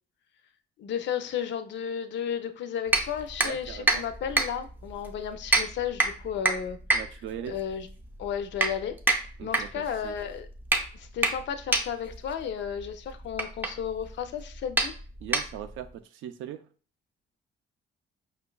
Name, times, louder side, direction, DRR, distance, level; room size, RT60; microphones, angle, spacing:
voice 1, 0.8-6.8 7.4-7.9 8.2-9.0 9.4-10.5 10.9-14.9, left 8 dB, 65° left, 8 dB, 0.5 m, -33 dB
sound 1, 2.9-15.9, right 2 dB, 10° right, 0.5 m, -29 dB
voice 2, 3.4-4.0 6.9-7.5 9.4-9.7 10.0-10.1 15.2-16.7, right 10 dB, 80° right, 9 dB, 0.4 m, -39 dB
5.1 x 2.2 x 2.2 m, 0.40 s
cardioid pair, 90°, 20 cm